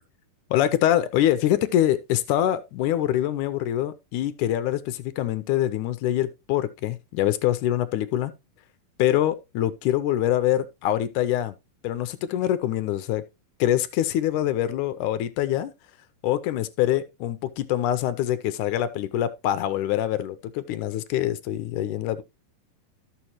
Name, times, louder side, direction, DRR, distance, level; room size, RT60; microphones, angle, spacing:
voice 1, 0.5-8.3 9.0-11.6 11.8-13.2 13.6-15.7 16.2-22.2, left 12 dB, 75° left, 1.9 m, -24 dB
13.0 x 7.1 x 3.0 m
omnidirectional pair, 4.0 m